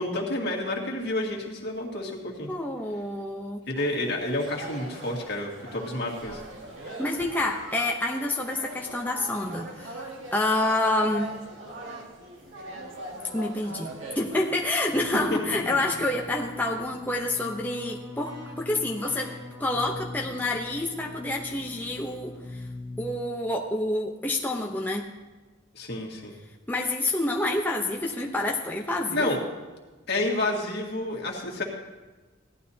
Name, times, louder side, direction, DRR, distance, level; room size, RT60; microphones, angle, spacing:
voice 1, 0.0-2.5 3.7-6.4 15.3-15.4 25.7-26.3 29.1-29.4 30.1-31.6, left 1 dB, 55° left, -1 dB, 2.0 m, -29 dB
voice 2, 2.5-3.6 7.0-11.3 13.3-19.3 19.6-22.7 23.0-25.1 26.7-29.3, left 2 dB, 10° left, 0 dB, 0.7 m, -28 dB
sound 1, 3.7-15.2, right 1 dB, 75° right, 1.7 m, -41 dB
Keyboard (musical), 14.9-23.6, left 2 dB, 40° right, 3.0 m, -42 dB
16.5 x 11.5 x 2.8 m, 1.2 s
head